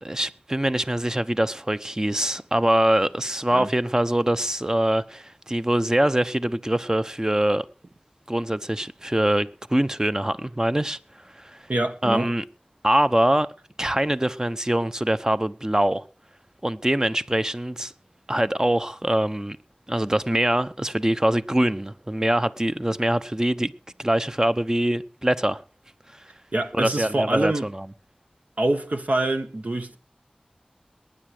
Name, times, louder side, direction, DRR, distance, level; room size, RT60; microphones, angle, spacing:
voice 1, 0.0-7.6 8.3-11.0 11.3-11.6 12.0-12.4 12.8-13.5 13.8-16.1 16.6-17.9 18.3-19.6 19.9-23.7 24.0-25.6 26.1-26.2 26.7-27.9, right 1 dB, 25° right, 0.9 m, -23 dB
voice 2, 11.7-12.3 26.5-27.7 28.6-30.0, right 2 dB, 65° right, 1.9 m, -25 dB
19.5 x 10.0 x 5.1 m
wide cardioid pair, 40°, 3 cm